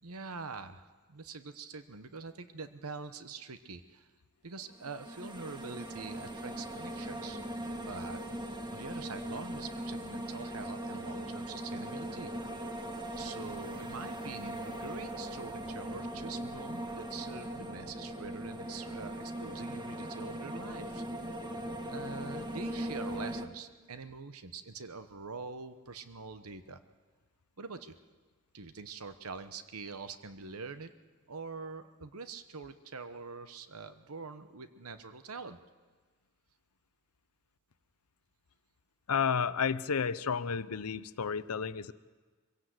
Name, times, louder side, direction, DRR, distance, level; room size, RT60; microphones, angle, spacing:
voice 1, 0.0-4.1 4.4-7.4 7.9-8.2 8.7-12.3 13.2-21.3 21.9-26.8 27.6-27.9 28.5-30.9 31.3-35.6, right 4 dB, 75° right, 10 dB, 1.0 m, -44 dB
sound 1, 4.7-23.5, right 1 dB, 20° right, 1.4 m, -40 dB
voice 2, 39.1-41.9, left 6 dB, 75° left, 15 dB, 0.7 m, -31 dB
24.0 x 16.5 x 7.9 m, 1.4 s
head